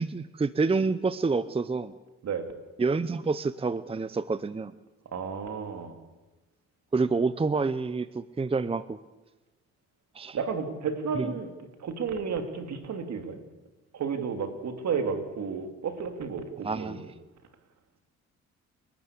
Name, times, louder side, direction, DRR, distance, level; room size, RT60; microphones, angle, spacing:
voice 1, 0.0-1.9 2.8-4.7 6.9-9.0 10.1-10.4 11.1-11.4 16.6-17.1, right 4 dB, 20° right, 15 dB, 0.7 m, -28 dB
voice 2, 5.1-6.0 10.3-11.5 11.8-13.4 13.9-17.0, right 6 dB, 60° right, 7 dB, 3.2 m, -32 dB
29.0 x 12.5 x 8.5 m, 1.1 s
cardioid pair, 90°, 30 cm